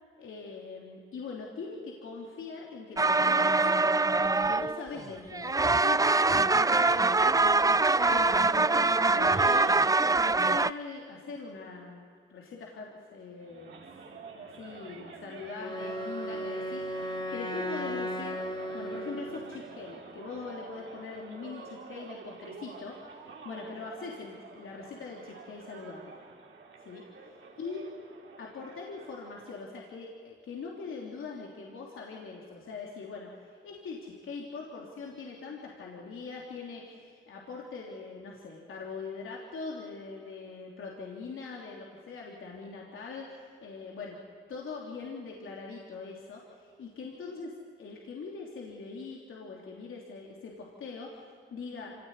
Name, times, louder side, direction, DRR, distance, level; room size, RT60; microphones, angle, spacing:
voice 1, 0.2-3.8 4.1-7.5 8.0-12.0 12.3-13.8 14.4-26.2 26.8-27.9 28.4-44.2 44.5-52.0, left 4 dB, 75° left, -1 dB, 3.3 m, -42 dB
sound 1, 3.0-5.1 5.3-10.7, right 3 dB, 15° right, 0.5 m, -24 dB
sound 2, 13.4-29.6, right 4 dB, 65° right, 3.8 m, -48 dB
Wind instrument woodwind instrument, 15.6-19.6, equal, 25° left, 4.6 m, -36 dB
25.5 x 18.0 x 9.7 m, 2.1 s
supercardioid pair, 55°, 21 cm